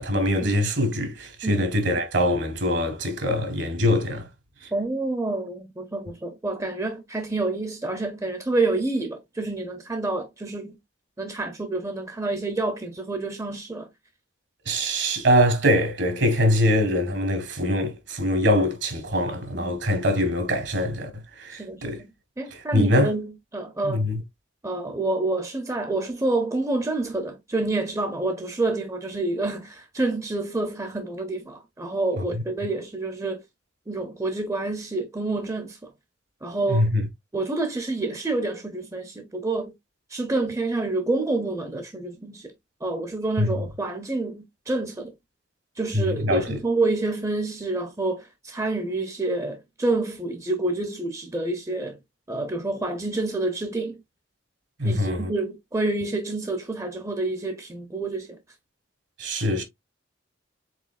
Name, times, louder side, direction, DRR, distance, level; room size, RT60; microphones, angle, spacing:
voice 1, 0.0-4.3 14.6-21.1 21.4-22.0 22.7-23.1 23.8-24.2 36.7-37.0 43.4-43.5 45.9-46.6 54.8-55.3 59.2-59.6, equal, 65° right, 1.3 m, -23 dB
voice 2, 4.7-10.8 11.2-13.9 19.5-19.8 21.5-24.0 24.6-33.4 33.9-35.9 36.4-36.9 37.3-39.7 40.1-42.5 42.8-45.1 45.8-52.0 52.3-54.0 54.8-58.4, right 2 dB, 15° right, 0.5 m, -28 dB
4.7 x 3.7 x 2.3 m
head